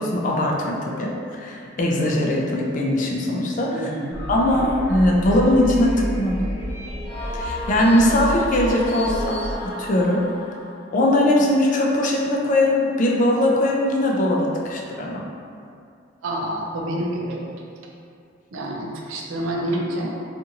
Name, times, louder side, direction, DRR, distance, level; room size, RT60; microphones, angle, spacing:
voice 1, 0.0-3.9 4.3-6.4 7.3-9.4 9.8-10.2 10.9-15.2, left 1 dB, 40° left, -2 dB, 0.4 m, -20 dB
voice 2, 3.7-4.2 16.2-17.6 18.5-20.1, right 1 dB, 80° right, -1 dB, 0.5 m, -28 dB
sound 1, 4.1-9.6, equal, 65° left, 1.1 m, -30 dB
sound 2, 7.0-10.8, equal, 35° right, 0.8 m, -33 dB
2.6 x 2.5 x 2.7 m, 2.4 s
head